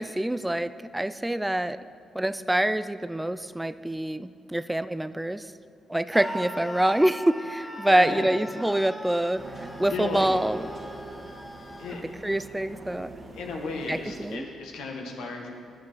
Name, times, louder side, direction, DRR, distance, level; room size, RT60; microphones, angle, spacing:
voice 1, 0.0-1.8 2.1-5.5 5.9-10.6 12.2-13.1 13.9-14.4, right 1 dB, 10° right, 14 dB, 0.3 m, -26 dB
Screaming, 6.1-12.0, equal, 10° left, 1.2 m, -40 dB
voice 2, 7.8-8.3 9.9-10.3 11.8-12.1 13.3-15.5, left 3 dB, 85° left, 1 dB, 1.6 m, -34 dB
sound 1, 9.4-14.4, right 2 dB, 45° right, 1.5 m, -43 dB
9.5 x 8.3 x 6.3 m, 2.3 s
supercardioid pair, 65°, 0 cm